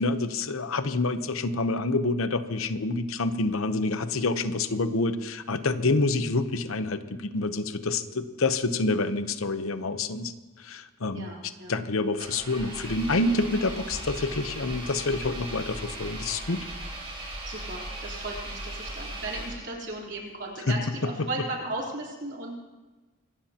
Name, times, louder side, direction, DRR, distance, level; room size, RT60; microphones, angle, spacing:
voice 1, 0.0-11.3 11.7-16.7 20.7-21.3, left 3 dB, 75° left, 10 dB, 0.9 m, -27 dB
voice 2, 11.1-11.8 17.5-22.5, right 2 dB, 55° right, -3 dB, 3.7 m, -36 dB
Engine, 12.2-19.9, right 1 dB, 25° right, 4.8 m, -38 dB
24.5 x 19.0 x 2.9 m, 1.2 s
head